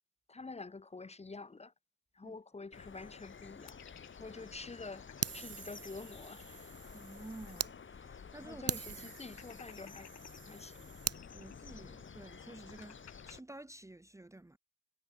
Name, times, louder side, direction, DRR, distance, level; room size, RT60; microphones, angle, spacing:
voice 1, 0.3-1.7 2.1-3.8 4.2-5.1 5.3-6.7 8.4-10.1 10.4-10.9, left 3 dB, 20° left, 1.4 m, -48 dB
sound 1, 2.7-13.4, left 6 dB, 40° left, 6.0 m, -52 dB
sound 2, 3.7-5.4 5.8-5.9 6.1-7.9 8.2-8.3 8.8-10.4 11.0-13.3, left 10 dB, 65° left, 2.3 m, -58 dB
Fire, 5.2-7.7 8.2-8.3 8.7-11.2, right 9 dB, 50° right, 1.4 m, -42 dB
voice 2, 6.9-8.6 9.0-9.1 11.3-14.6, right 2 dB, 10° right, 1.1 m, -51 dB
cardioid pair, 90°, 30 cm